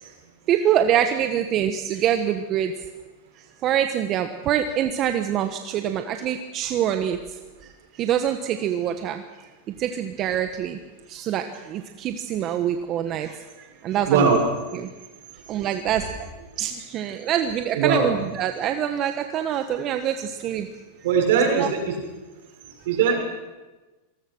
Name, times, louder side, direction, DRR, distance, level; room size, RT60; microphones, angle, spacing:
voice 1, 0.5-2.7 3.6-7.2 7.6-9.2 9.8-10.8 11.1-14.4 14.7-14.9 15.5-16.1 16.6-20.7 21.5-21.7, right 10 dB, 40° right, 7 dB, 1.4 m, -25 dB
voice 2, 14.1-14.4 15.5-15.7 17.7-18.1 21.0-21.9 22.8-23.2, right 6 dB, 70° right, 2 dB, 6.8 m, -20 dB
26.5 x 20.0 x 6.3 m, 1.2 s
hypercardioid pair, 125°, 0 cm